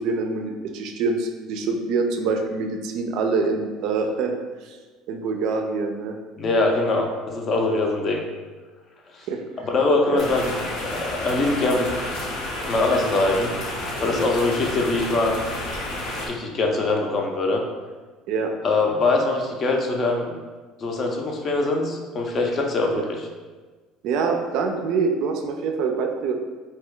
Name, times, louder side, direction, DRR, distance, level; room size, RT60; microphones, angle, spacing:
voice 1, 0.0-4.4 4.6-4.8 5.1-6.2 9.3-9.7 10.1-10.2 18.3-18.5 24.0-26.3, right 4 dB, 70° right, 4 dB, 0.3 m, -25 dB
voice 2, 6.4-8.3 9.1-9.3 9.6-10.5 10.8-11.9 12.7-13.5 14.0-15.4 16.3-17.6 18.6-20.3 20.8-23.3, left 2 dB, 35° left, 2 dB, 0.5 m, -23 dB
sound 1, 10.2-16.3, left 1 dB, 75° left, 0.7 m, -30 dB
2.7 x 2.2 x 3.6 m, 1.4 s
cardioid pair, 125°, 0 cm